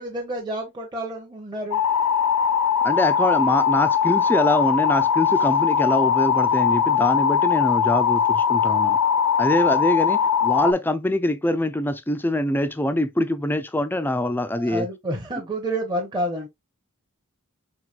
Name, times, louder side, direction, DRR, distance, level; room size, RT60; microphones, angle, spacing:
voice 1, 0.0-1.8 14.6-16.5, right 1 dB, 20° right, 0.8 m, -29 dB
sound 1, 1.7-10.7, left 7 dB, 85° left, 0.5 m, -20 dB
voice 2, 2.8-9.0 9.4-14.9, left 1 dB, 10° left, 0.4 m, -24 dB
4.7 x 3.6 x 2.4 m
head